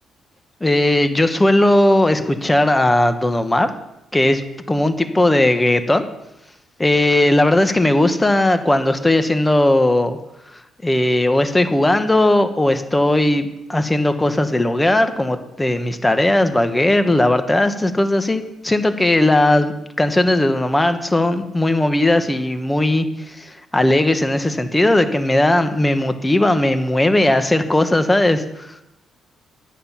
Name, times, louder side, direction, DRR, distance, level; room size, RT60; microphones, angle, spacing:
voice 1, 0.6-3.7 4.1-6.0 6.8-10.2 10.8-28.7, left 1 dB, 15° left, 9 dB, 1.2 m, -17 dB
11.5 x 9.5 x 5.8 m, 0.88 s
cardioid pair, 90°, 0 cm